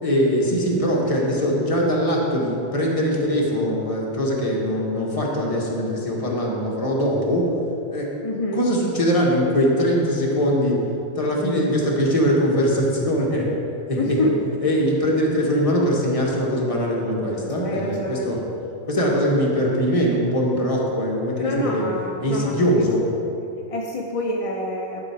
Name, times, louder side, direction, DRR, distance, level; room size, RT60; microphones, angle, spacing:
voice 1, 0.0-7.5 7.9-8.1 8.5-10.8 11.2-13.5 13.9-14.2 14.6-18.4 18.9-21.9 22.2-23.0, equal, 25° left, -3 dB, 1.3 m, -21 dB
voice 2, 8.2-8.6 13.9-14.4 17.6-18.3 21.3-22.9 23.7-25.0, left 1 dB, 40° left, -1 dB, 0.5 m, -26 dB
11.0 x 5.0 x 4.8 m, 2.8 s
omnidirectional pair, 1.5 m